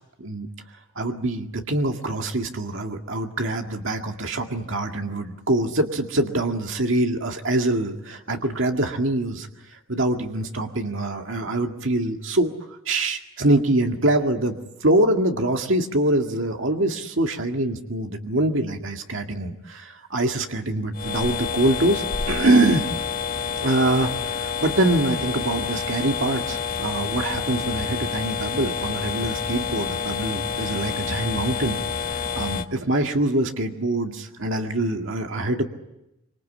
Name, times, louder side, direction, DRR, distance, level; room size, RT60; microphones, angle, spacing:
voice 1, 1.0-22.9 23.6-35.6, right 1 dB, 65° right, 3 dB, 2.1 m, -24 dB
sound 1, 20.9-32.6, left 6 dB, 45° left, 1.4 m, -28 dB
26.0 x 26.0 x 8.7 m, 0.89 s
head